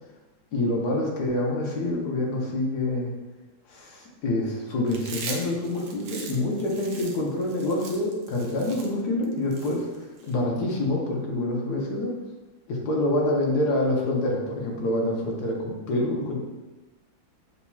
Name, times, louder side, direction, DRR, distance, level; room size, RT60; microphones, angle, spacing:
voice 1, 0.5-3.1 3.7-9.9 10.2-12.2 12.7-16.4, left 1 dB, 60° left, -2 dB, 1.3 m, -26 dB
Chewing mastication, 4.9-10.3, right 4 dB, 70° right, 1.1 m, -40 dB
6.9 x 2.9 x 2.3 m, 1.1 s
omnidirectional pair, 2.1 m